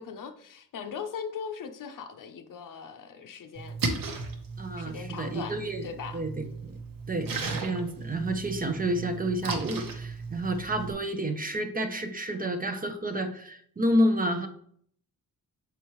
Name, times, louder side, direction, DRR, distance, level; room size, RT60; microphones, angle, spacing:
voice 1, 0.0-3.8 4.8-6.2 7.3-7.4, left 6 dB, 60° left, 0.7 m, -39 dB
Splash splatter, 3.6-10.9, right 4 dB, 65° right, 1.1 m, -36 dB
voice 2, 4.6-5.8 6.1-6.8 7.1-14.5, right 1 dB, 25° right, 0.6 m, -29 dB
6.9 x 4.5 x 3.0 m
cardioid pair, 100°, 36 cm